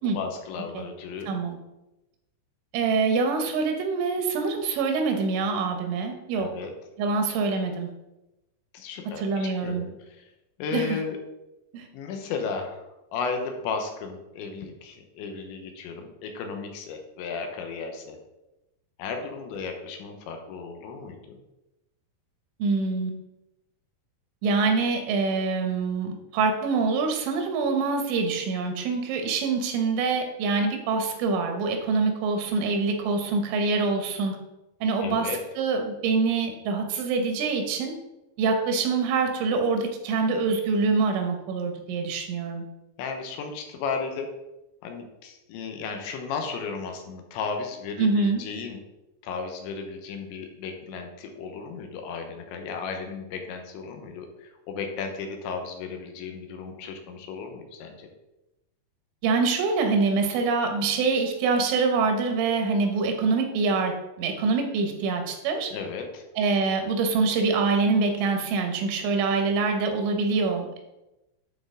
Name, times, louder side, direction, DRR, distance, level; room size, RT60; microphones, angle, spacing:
voice 1, 0.1-1.3 6.4-6.7 8.7-10.3 10.6-11.2 11.9-12.8 13.1-18.2 19.0-21.4 35.0-35.4 43.0-44.3 44.8-48.8 49.2-58.1 65.7-66.2, left 5 dB, 80° left, 4 dB, 3.2 m, -34 dB
voice 2, 1.3-1.6 2.7-6.5 7.0-7.9 9.1-9.9 10.7-11.0 11.7-11.9 22.6-23.1 24.4-34.4 34.8-37.9 38.4-42.7 48.0-48.4 59.2-65.7 66.4-70.8, right 4 dB, 85° right, 4 dB, 3.5 m, -25 dB
11.0 x 4.4 x 3.7 m, 0.95 s
omnidirectional pair, 5.3 m